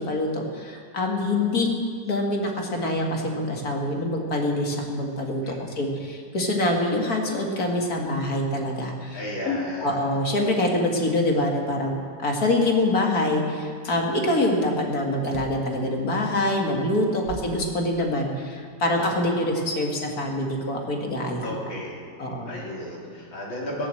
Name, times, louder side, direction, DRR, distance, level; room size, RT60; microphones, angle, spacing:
voice 1, 0.0-1.7 2.1-9.2 9.4-21.6 22.2-22.5, left 1 dB, 50° left, 1 dB, 2.4 m, -25 dB
voice 2, 5.4-5.8 9.1-10.2 17.0-17.3 21.4-22.0 22.5-23.9, left 1 dB, 90° left, -4 dB, 4.3 m, -34 dB
sound 1, 15.2-15.7 16.4-16.5 16.9-18.4 19.0-19.2 19.9-20.9, right 4 dB, 60° right, 1.5 m, -41 dB
15.5 x 11.0 x 7.8 m, 2.1 s
omnidirectional pair, 2.1 m